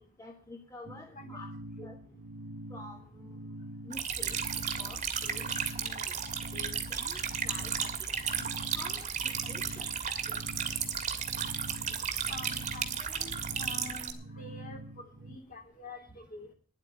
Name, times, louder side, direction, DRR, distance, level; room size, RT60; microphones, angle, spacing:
voice 1, 0.2-1.5 1.8-2.0 2.7-3.4 3.8-4.4 4.8-6.1 6.5-8.5 8.7-9.9 10.2-10.4, left 2 dB, 15° left, 1 dB, 1.4 m, -48 dB
sound 1, 0.8-15.4, right 1 dB, 85° right, 0.9 m, -45 dB
voice 2, 1.8-2.2 11.9-16.5, left 1 dB, 40° left, 4 dB, 3.0 m, -47 dB
sound 2, 3.9-14.1, right 7 dB, 35° right, 1.7 m, -34 dB
10.5 x 8.2 x 8.5 m, 0.44 s
head